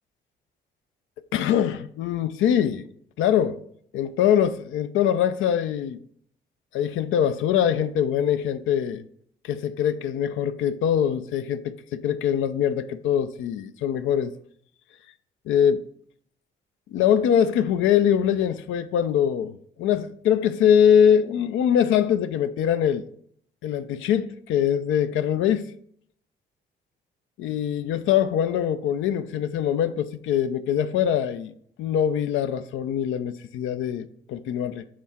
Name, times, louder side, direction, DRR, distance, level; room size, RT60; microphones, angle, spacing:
voice 1, 1.3-2.9 3.2-3.6 3.9-6.0 6.7-9.0 9.4-14.3 15.5-15.9 16.9-23.1 23.6-25.7 27.4-34.9, left 9 dB, 80° left, 0.5 m, -23 dB
7.5 x 3.7 x 4.2 m
cardioid pair, 90°, 20 cm